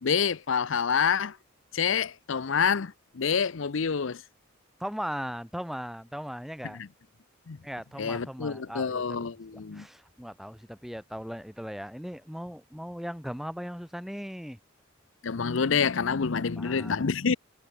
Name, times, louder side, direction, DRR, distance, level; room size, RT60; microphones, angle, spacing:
voice 1, 0.0-1.4 1.7-4.2 6.8-6.9 7.5-7.6 8.0-9.9 15.2-17.3, left 6 dB, 65° left, 0.6 m, -27 dB
voice 2, 4.8-6.8 7.6-14.6 16.3-17.1, equal, ahead, 2.6 m, -38 dB
head